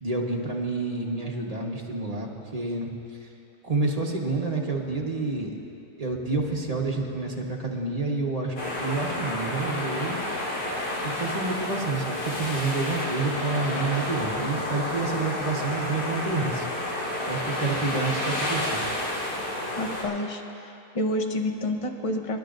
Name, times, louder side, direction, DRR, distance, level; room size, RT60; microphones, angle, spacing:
voice 1, 0.0-2.9 3.2-3.3 3.6-5.5 6.0-10.2 11.0-16.7 17.3-18.9, right 3 dB, 25° right, -1 dB, 1.2 m, -29 dB
sound 1, 8.6-20.0, left 1 dB, 80° left, 3.1 m, -30 dB
voice 2, 19.8-22.4, left 1 dB, 35° left, 4 dB, 0.6 m, -29 dB
28.0 x 12.0 x 2.6 m, 2.7 s
omnidirectional pair, 1.7 m